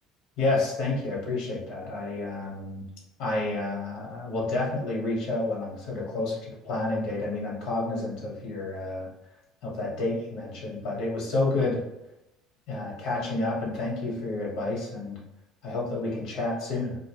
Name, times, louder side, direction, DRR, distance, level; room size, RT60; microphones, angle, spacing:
voice 1, 0.4-2.8 3.2-9.1 9.6-11.8 12.7-15.2 15.6-17.0, left 2 dB, 65° left, -3 dB, 0.9 m, -30 dB
2.0 x 2.0 x 3.2 m, 0.90 s
hypercardioid pair, 80°, 0 cm